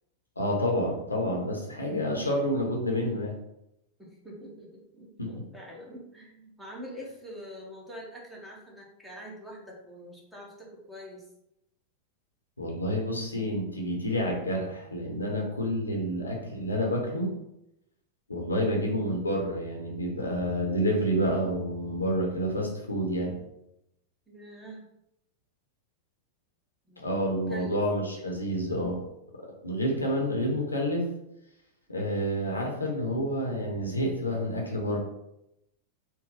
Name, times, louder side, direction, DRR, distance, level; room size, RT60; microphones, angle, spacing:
voice 1, 0.4-3.3 5.2-5.3 12.6-17.3 18.3-23.4 27.0-29.0 29.6-31.0 31.9-35.0, equal, 80° left, -1 dB, 0.8 m, -29 dB
voice 2, 4.0-11.2 24.3-24.8 26.9-27.8, equal, 5° right, -3 dB, 1.0 m, -45 dB
3.9 x 2.1 x 3.7 m, 0.83 s
figure-of-eight pair, 90°, 0 cm